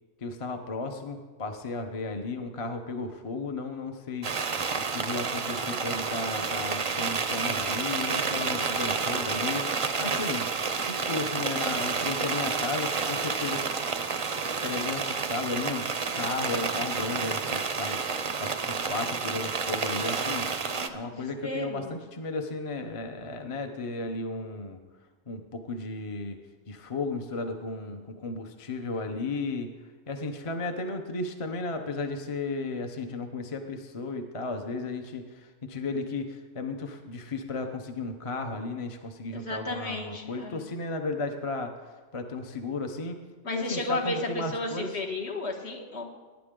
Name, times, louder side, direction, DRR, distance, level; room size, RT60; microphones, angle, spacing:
voice 1, 0.2-4.3 4.9-9.7 10.0-10.4 10.8-13.7 14.6-20.5 20.9-24.8 25.3-26.4 26.7-29.7 30.1-43.2 43.5-44.9, left 3 dB, 30° left, 6 dB, 0.8 m, -34 dB
sound 1, 4.2-20.9, right 5 dB, 40° right, 0.5 m, -30 dB
voice 2, 20.7-21.9 39.3-40.7 43.4-46.0, left 1 dB, 65° left, -1 dB, 1.9 m, -33 dB
18.5 x 9.8 x 3.8 m, 1.3 s
omnidirectional pair, 1.2 m